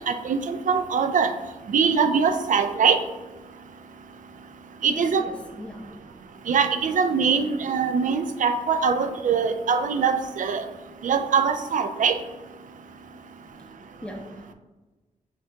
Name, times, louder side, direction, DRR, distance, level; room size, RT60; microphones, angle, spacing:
voice 1, 0.0-1.3 1.7-3.0 4.8-5.2 6.5-10.7 11.0-12.2, right 6 dB, 65° right, 8 dB, 0.4 m, -22 dB
voice 2, 4.9-5.9 13.1-14.5, equal, 10° left, 2 dB, 0.6 m, -40 dB
5.2 x 2.8 x 2.8 m, 1.2 s
wide cardioid pair, 105°, 14 cm